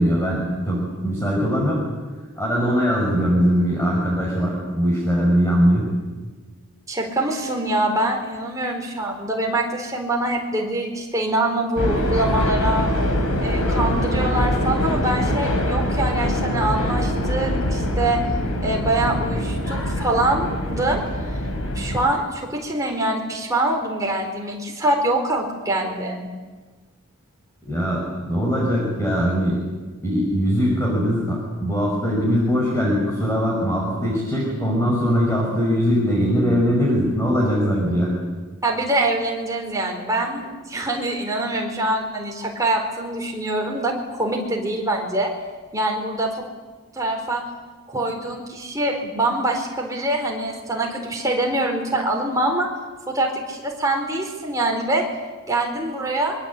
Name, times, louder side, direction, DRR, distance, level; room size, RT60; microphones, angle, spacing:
voice 1, 0.0-1.8 2.4-5.9 27.6-29.6 30.0-38.1, equal, 10° left, -3 dB, 5.7 m, -21 dB
voice 2, 6.9-12.9 13.4-18.2 18.6-21.0 21.7-26.3 38.6-45.3 45.7-46.3 46.9-47.4 47.9-52.7 53.1-55.0 55.5-56.4, right 1 dB, 15° right, 0 dB, 4.5 m, -24 dB
sound 1, 11.8-22.1, left 1 dB, 90° left, 4.1 m, -23 dB
25.5 x 24.0 x 8.6 m, 1.4 s
head